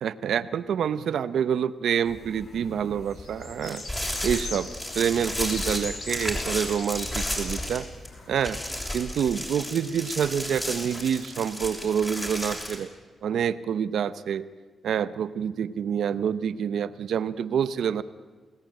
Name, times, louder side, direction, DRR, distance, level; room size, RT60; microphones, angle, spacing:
voice 1, 0.0-3.8 4.2-7.9 8.3-8.6 8.9-12.9 13.2-14.5 14.8-18.0, right 8 dB, 80° right, 14 dB, 0.9 m, -27 dB
sound 1, 2.0-8.7, left 3 dB, 60° left, 5.0 m, -41 dB
sound 2, 3.6-8.1 8.4-12.8, left 1 dB, 10° left, 6.6 m, -33 dB
28.5 x 18.0 x 9.0 m, 1.5 s
cardioid pair, 100°, 0 cm